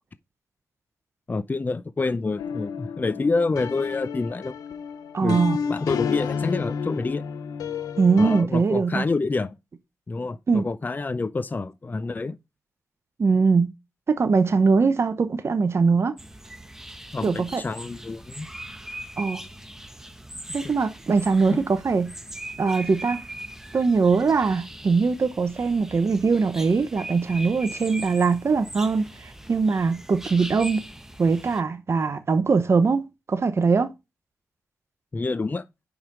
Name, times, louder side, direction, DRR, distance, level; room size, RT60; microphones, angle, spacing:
voice 1, 1.3-4.5 5.2-7.2 8.2-9.6 10.1-12.4 17.1-18.5 21.5-21.6 35.1-35.6, left 3 dB, 30° left, 0.5 m, -27 dB
sound 1, 2.4-8.4, left 6 dB, 90° left, 0.6 m, -31 dB
voice 2, 5.1-5.6 8.0-9.1 10.5-10.6 13.2-13.7 14.1-16.2 17.2-17.6 19.2-19.4 20.5-22.1 22.6-23.2 23.7-30.8 31.2-33.9, right 4 dB, 50° right, 0.7 m, -21 dB
sound 2, 16.2-31.6, right 1 dB, 10° right, 0.9 m, -40 dB
5.3 x 4.8 x 4.8 m
cardioid pair, 55°, 6 cm